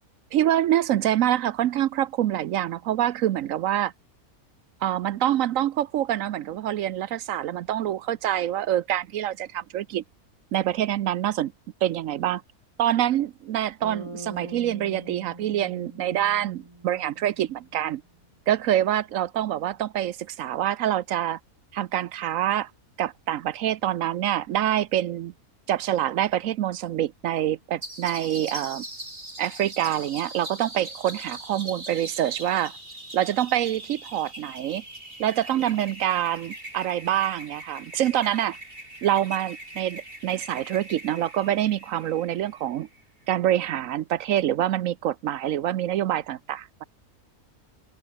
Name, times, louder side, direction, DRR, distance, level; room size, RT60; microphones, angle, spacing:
voice 1, 0.3-3.9 4.8-10.0 10.5-11.5 11.8-12.4 12.8-18.0 18.5-21.4 21.7-22.7 23.0-25.3 25.7-28.8 29.4-32.7 33.1-34.8 35.2-38.6 39.0-42.9 43.3-46.8, right 12 dB, 70° right, 1.0 m, -26 dB
Bass guitar, 13.8-17.9, right 2 dB, 20° right, 2.8 m, -43 dB
sound 1, 27.8-43.0, right 1 dB, 40° right, 7.3 m, -41 dB
open air
omnidirectional pair, 1.5 m